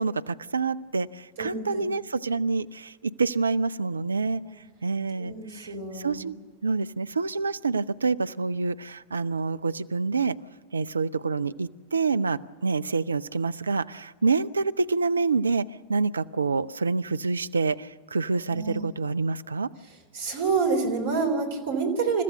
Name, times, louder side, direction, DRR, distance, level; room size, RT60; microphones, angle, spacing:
voice 1, 0.0-4.4 4.8-6.3 6.6-10.4 10.7-19.7, right 4 dB, 75° right, 14 dB, 0.5 m, -27 dB
voice 2, 1.4-1.8 4.4-4.5 5.2-6.3 18.5-18.8 20.1-22.2, right 4 dB, 55° right, 4 dB, 3.6 m, -28 dB
29.0 x 14.5 x 6.7 m, 1.5 s
figure-of-eight pair, 90°, 0 cm